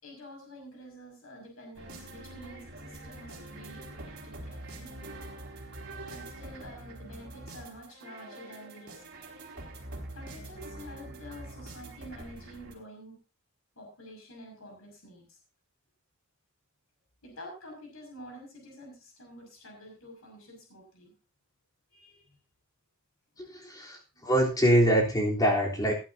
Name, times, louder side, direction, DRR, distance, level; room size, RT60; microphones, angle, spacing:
voice 1, 0.0-4.9 6.1-9.0 10.1-13.2 13.8-15.3 17.2-21.1 21.9-22.2 24.1-24.3, equal, 80° left, 1 dB, 6.2 m, -48 dB
sound 1, 1.8-12.7, right 2 dB, 55° right, 4.9 m, -44 dB
voice 2, 23.4-25.9, equal, 20° left, -1 dB, 3.7 m, -24 dB
19.0 x 11.5 x 2.8 m, 0.31 s
head